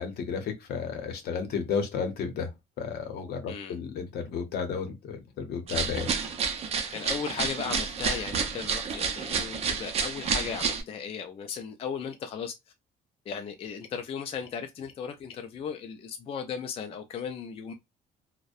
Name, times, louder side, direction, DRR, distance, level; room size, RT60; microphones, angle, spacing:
voice 1, 0.0-2.5 2.8-6.1, left 6 dB, 70° left, 0.8 m, -32 dB
sound 1, 5.7-10.8, right 6 dB, 40° right, 0.5 m, -30 dB
voice 2, 6.9-12.6 13.3-17.7, left 6 dB, 35° left, 0.4 m, -36 dB
2.5 x 2.1 x 2.3 m
cardioid pair, 135°, 17 cm